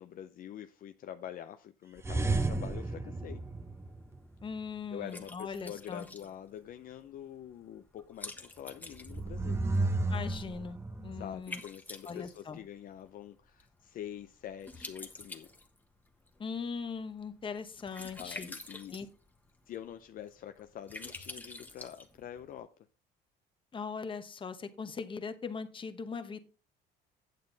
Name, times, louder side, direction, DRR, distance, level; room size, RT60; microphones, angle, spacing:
voice 1, 0.0-3.4 4.9-9.6 11.2-15.5 18.2-19.0 19.7-22.7, left 10 dB, 55° left, 0.6 m, -45 dB
sound 1, 2.0-4.4 8.9-11.3, right 2 dB, 15° right, 0.9 m, -32 dB
Liquid, 3.2-22.6, left 2 dB, 10° left, 1.3 m, -50 dB
voice 2, 4.4-6.1 10.1-11.6 12.0-12.6 16.4-18.5 18.9-19.1 23.7-26.4, left 5 dB, 30° left, 1.1 m, -40 dB
9.3 x 7.4 x 4.0 m
cardioid pair, 110°, 17 cm